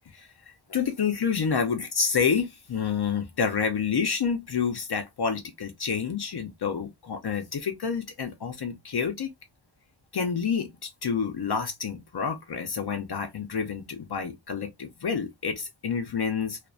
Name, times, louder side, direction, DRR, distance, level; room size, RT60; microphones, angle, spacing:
voice 1, 0.1-9.3 10.1-16.7, left 6 dB, 55° left, 0.6 m, -29 dB
2.4 x 2.1 x 2.4 m
wide cardioid pair, 85°, 46 cm